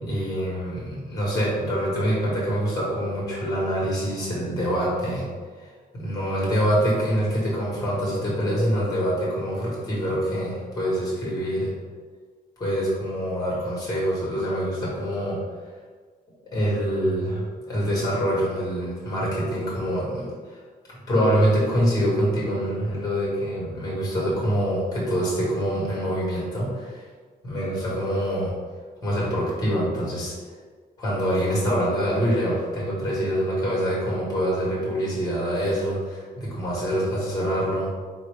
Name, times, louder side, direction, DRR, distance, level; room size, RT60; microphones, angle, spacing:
voice 1, 0.0-5.2 5.6-5.7 5.9-11.7 12.6-15.4 16.5-20.6 21.1-27.0 27.4-28.5 29.0-30.3 31.0-37.9, equal, 25° left, -6 dB, 1.5 m, -25 dB
4.3 x 2.9 x 3.3 m, 1.5 s
wide cardioid pair, 165°, 16 cm